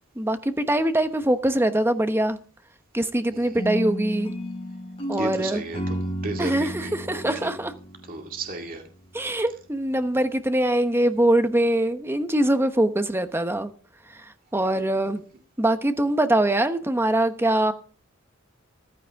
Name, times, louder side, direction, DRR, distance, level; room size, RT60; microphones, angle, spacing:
voice 1, 0.2-2.4 2.9-4.3 5.1-5.6 6.4-7.7 9.1-13.7 14.5-15.2 15.6-17.7, right 1 dB, 10° right, 1.1 m, -23 dB
sound 1, 3.6-8.7, equal, 30° left, 4.9 m, -33 dB
voice 2, 5.2-7.5 8.1-8.8, right 2 dB, 45° right, 2.2 m, -34 dB
15.0 x 13.5 x 3.6 m
head